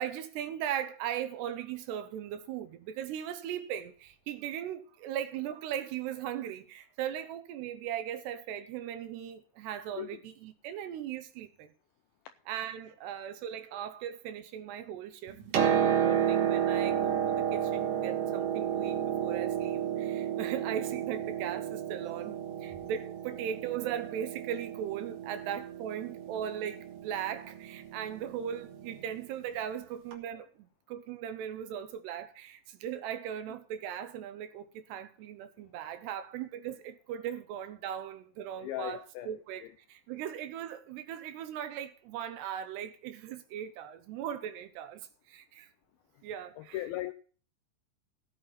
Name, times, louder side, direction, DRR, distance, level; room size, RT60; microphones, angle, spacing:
voice 1, 0.0-11.7 12.5-45.7 46.2-46.8, right 10 dB, 80° right, 3.0 m, -38 dB
Piano, 15.3-29.0 30.1-30.2, right 9 dB, 60° right, 2.8 m, -32 dB
voice 2, 38.6-39.3 39.6-39.7 46.6-47.1, left 14 dB, 80° left, 2.2 m, -38 dB
15.0 x 8.9 x 4.2 m
omnidirectional pair, 4.9 m